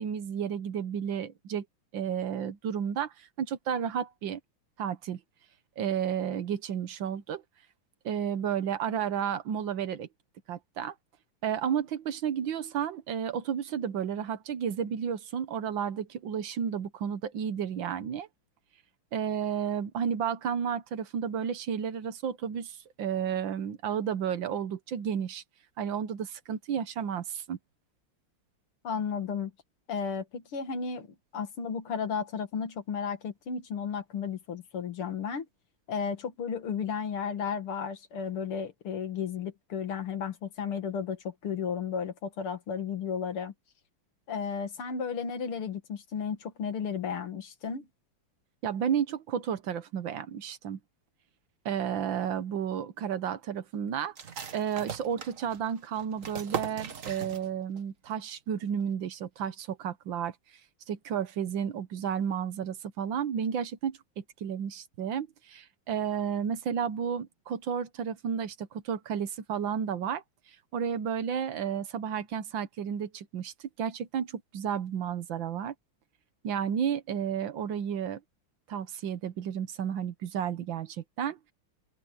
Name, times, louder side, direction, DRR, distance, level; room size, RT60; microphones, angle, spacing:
voice 1, 0.0-1.6 1.9-4.4 4.8-5.2 5.8-7.4 8.0-10.1 10.5-10.9 11.4-18.3 19.1-25.4 25.8-27.6 48.6-50.8 51.6-54.1 54.5-60.3 60.9-70.2 70.7-75.7 76.4-78.2 78.7-81.4, right 8 dB, 65° right, 1.7 m, -32 dB
voice 2, 28.8-29.5 29.9-31.1 31.3-35.4 35.9-43.5 44.3-47.9, left 6 dB, 85° left, 2.8 m, -33 dB
sound 1, 54.2-57.8 58.1-58.2 58.6-59.1, right 7 dB, 40° right, 1.5 m, -39 dB
omnidirectional pair, 2.3 m